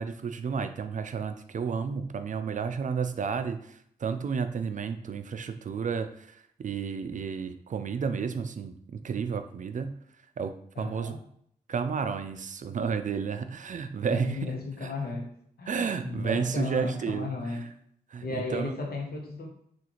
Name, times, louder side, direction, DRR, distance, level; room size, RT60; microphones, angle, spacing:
voice 1, 0.0-10.0 10.4-11.1 11.7-14.4 14.8-14.9 15.7-17.6 18.1-18.2 18.5-18.7, right 6 dB, 50° right, 9 dB, 0.4 m, -32 dB
voice 2, 10.7-11.2 14.1-15.3 15.6-17.7 18.2-19.5, left 3 dB, 70° left, 1 dB, 0.9 m, -34 dB
3.7 x 2.5 x 3.0 m, 0.67 s
supercardioid pair, 40°, 17 cm